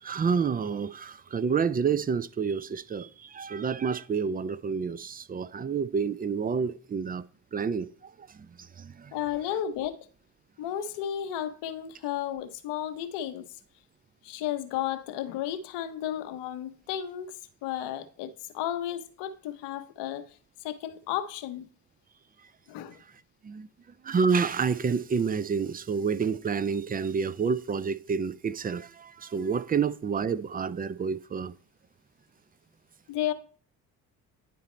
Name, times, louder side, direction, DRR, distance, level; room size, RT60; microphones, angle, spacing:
voice 1, 0.0-7.3 7.5-9.1 23.4-23.7 24.0-31.5, right 6 dB, 20° right, 0.4 m, -29 dB
voice 2, 9.1-9.9 10.6-13.5 14.2-17.3 17.6-20.3 20.6-21.7 22.7-23.0 29.7-29.8 33.1-33.3, left 11 dB, 75° left, 0.8 m, -33 dB
10.0 x 3.9 x 4.3 m
hypercardioid pair, 50°, 41 cm